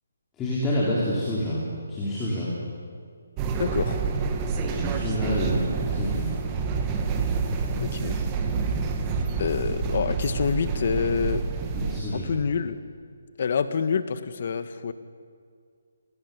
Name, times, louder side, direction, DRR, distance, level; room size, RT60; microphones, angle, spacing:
voice 1, 0.4-1.6 1.9-2.5 4.6-6.3 11.7-12.3, left 1 dB, 10° left, -7 dB, 4.6 m, -28 dB
sound 1, 3.4-12.0, right 5 dB, 20° right, 2.1 m, -28 dB
voice 2, 3.6-4.0 7.8-8.2 9.4-11.4 12.1-12.8 13.4-14.9, left 6 dB, 50° left, 11 dB, 1.7 m, -27 dB
27.5 x 18.5 x 9.7 m, 2.2 s
hypercardioid pair, 160°, 0 cm